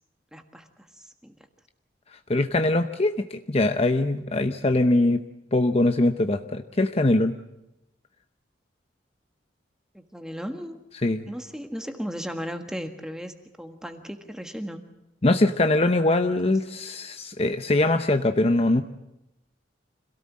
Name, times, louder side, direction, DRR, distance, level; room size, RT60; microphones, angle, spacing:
voice 1, 0.3-1.3 9.9-10.8 11.3-14.8 16.4-16.5, equal, 5° right, 5 dB, 1.6 m, -36 dB
voice 2, 2.3-5.2 5.5-7.4 11.0-11.2 15.2-18.8, left 2 dB, 35° left, 7 dB, 0.8 m, -22 dB
26.5 x 17.5 x 7.5 m, 0.92 s
head